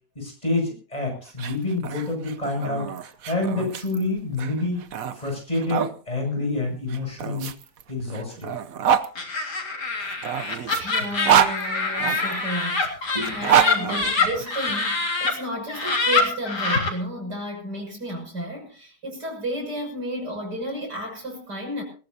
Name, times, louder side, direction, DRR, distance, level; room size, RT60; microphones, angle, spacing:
voice 1, 0.1-4.8 5.1-7.5 7.9-8.5 13.1-13.4 13.7-13.9, left 2 dB, 20° left, 1 dB, 8.2 m, -28 dB
sound 1, 1.3-5.9 6.9-9.1 10.0-12.4 13.2-14.8, right 8 dB, 60° right, 1.2 m, -26 dB
Laughter, 9.1-15.3 15.7-16.9, left 4 dB, 80° left, 4.1 m, -25 dB
voice 2, 10.8-21.8, equal, 85° right, 1 dB, 7.4 m, -32 dB
21.0 x 18.5 x 2.8 m, 0.38 s
omnidirectional pair, 1.8 m